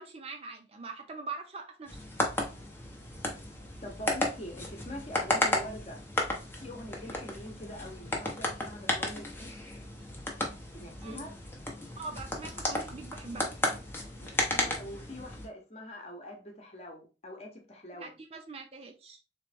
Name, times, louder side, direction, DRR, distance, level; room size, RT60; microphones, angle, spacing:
voice 1, 0.0-2.0 11.0-11.2 12.0-13.5 17.9-19.2, right 4 dB, 30° right, 0.5 m, -43 dB
sound 1, 1.9-15.5, left 1 dB, 10° left, 0.7 m, -34 dB
voice 2, 3.8-6.0 6.6-9.5 10.7-11.3 14.2-18.1, left 1 dB, 35° left, 1.0 m, -44 dB
3.9 x 3.0 x 3.4 m
head